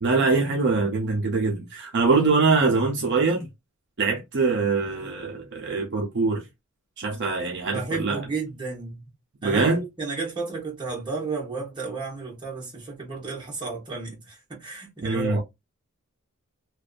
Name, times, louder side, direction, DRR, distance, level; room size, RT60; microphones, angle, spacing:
voice 1, 0.0-3.5 4.0-6.4 7.0-8.2 9.4-9.8 15.0-15.4, right 4 dB, 50° right, 0.5 m, -23 dB
voice 2, 7.7-9.1 9.4-15.4, right 4 dB, 20° right, 1.0 m, -32 dB
2.6 x 2.2 x 2.4 m
head